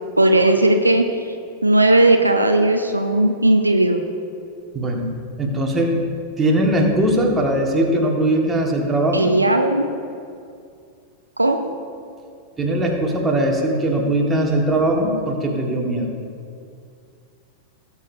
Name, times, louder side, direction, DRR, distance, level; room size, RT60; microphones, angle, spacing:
voice 1, 0.2-1.0 1.6-4.0 9.1-9.9 11.4-11.6, right 1 dB, 85° right, 5 dB, 0.6 m, -16 dB
voice 2, 4.7-5.1 5.4-6.0 6.4-9.3 12.6-16.1, right 1 dB, 15° right, 0 dB, 1.7 m, -20 dB
18.0 x 7.3 x 2.7 m, 2.4 s
figure-of-eight pair, 90°, 0 cm